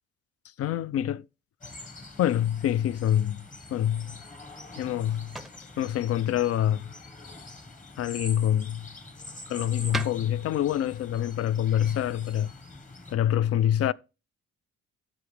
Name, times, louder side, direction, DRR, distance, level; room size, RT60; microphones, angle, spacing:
voice 1, 0.6-1.2 2.2-3.4 3.7-4.2 4.8-5.3 5.8-6.9 8.0-8.9 9.5-12.5 13.1-13.9, left 11 dB, 55° left, 0.4 m, -26 dB
sound 1, 1.6-13.1, left 2 dB, 25° left, 1.3 m, -45 dB
sound 2, 4.1-13.3, right 1 dB, ahead, 0.6 m, -45 dB
13.0 x 5.0 x 3.3 m
cardioid pair, 90°, 30 cm